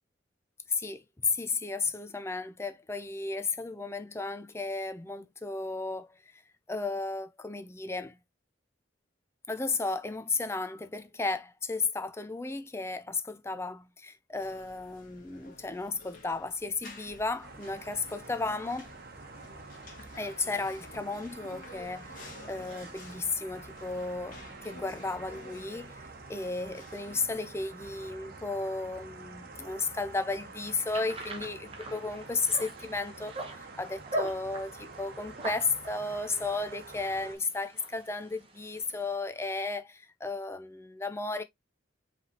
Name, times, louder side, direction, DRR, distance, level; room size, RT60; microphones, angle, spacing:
voice 1, 0.8-6.1 6.7-8.2 9.5-18.9 20.2-26.0 26.3-41.4, left 3 dB, 15° left, 0.5 m, -34 dB
sound 1, 14.4-27.3, left 2 dB, 50° left, 1.4 m, -52 dB
sound 2, 17.4-37.4, right 3 dB, 55° right, 1.0 m, -48 dB
sound 3, 30.9-39.1, right 2 dB, 30° right, 1.1 m, -42 dB
5.1 x 3.4 x 2.7 m
head